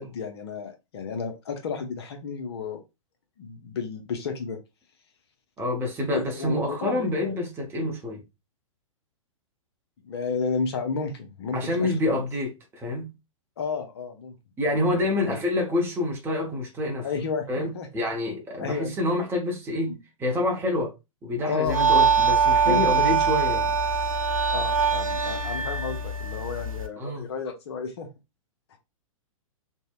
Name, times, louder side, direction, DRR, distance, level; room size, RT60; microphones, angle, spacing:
voice 1, 0.0-2.8 3.4-4.6 6.1-7.4 10.0-12.2 13.6-14.3 14.7-15.4 17.0-17.9 18.6-18.9 19.9-20.0 21.4-22.1 22.6-22.8 24.5-28.1 28.7-28.8, left 5 dB, 50° left, 0.5 m, -32 dB
voice 2, 5.6-8.2 11.5-13.1 14.6-17.1 17.5-20.9 21.2-23.7 27.0-27.3, left 2 dB, 15° right, 0.6 m, -27 dB
sound 1, 21.7-26.9, right 5 dB, 90° right, 0.4 m, -23 dB
2.7 x 2.0 x 2.3 m
figure-of-eight pair, 110°, 17 cm